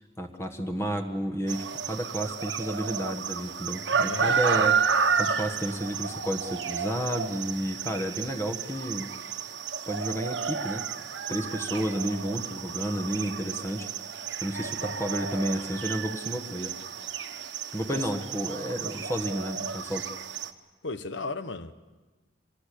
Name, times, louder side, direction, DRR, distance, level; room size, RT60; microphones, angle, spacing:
voice 1, 0.2-9.3 9.9-10.9 11.3-13.9 14.4-16.7 17.7-20.1, equal, 15° left, 1.3 m, -31 dB
sound 1, 1.5-20.5, right 6 dB, 80° right, 1.3 m, -31 dB
voice 2, 4.1-4.4 17.9-18.1 20.8-21.7, left 3 dB, 85° left, 1.1 m, -34 dB
25.5 x 19.5 x 8.4 m
head